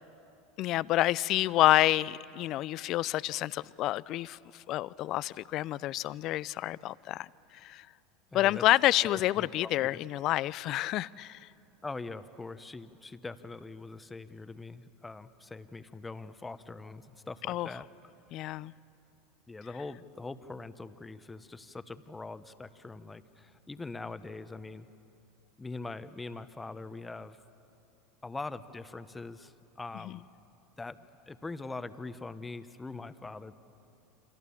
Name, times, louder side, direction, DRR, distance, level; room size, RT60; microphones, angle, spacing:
voice 1, 0.6-7.3 7.5-7.9 8.3-11.5 17.5-17.7 18.3-18.7 30.0-30.2, left 15 dB, 50° left, 0.5 m, -28 dB
voice 2, 8.3-8.6 9.0-10.0 11.8-17.8 19.5-24.9 25.6-27.4 28.2-30.2 30.8-33.5, left 3 dB, 15° left, 1.3 m, -42 dB
28.5 x 26.0 x 7.2 m
hypercardioid pair, 85°, 0 cm